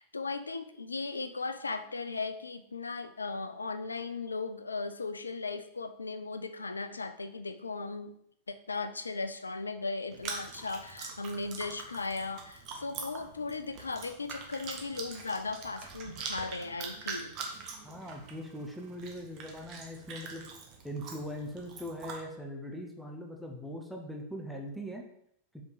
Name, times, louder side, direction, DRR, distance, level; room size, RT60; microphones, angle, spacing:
voice 1, 0.0-8.1 8.5-17.3, left 3 dB, 80° left, 11 dB, 0.4 m, -37 dB
Chewing mastication, 10.1-22.2, right 5 dB, 40° right, 1.2 m, -44 dB
voice 2, 17.8-20.5 20.8-25.0, equal, ahead, 0 dB, 0.8 m, -41 dB
5.1 x 4.7 x 4.0 m, 0.73 s
figure-of-eight pair, 90°, 0 cm